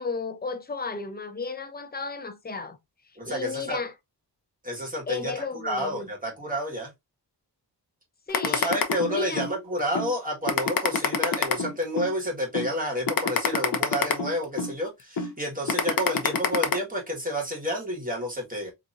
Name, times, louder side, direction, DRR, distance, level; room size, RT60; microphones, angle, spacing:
voice 1, 0.0-2.8 3.2-3.9 5.1-6.1 8.3-8.8 9.1-9.4, left 4 dB, 25° left, 0.6 m, -33 dB
voice 2, 3.2-3.8 4.6-6.9 8.4-18.7, equal, 20° right, 1.6 m, -30 dB
sound 1, 8.3-9.5 9.9-10.1 10.5-12.1 12.5-12.7 13.1-14.7 15.2-15.3 15.7-16.7, left 6 dB, 55° left, 0.8 m, -25 dB
3.9 x 3.0 x 2.6 m
wide cardioid pair, 105°, 42 cm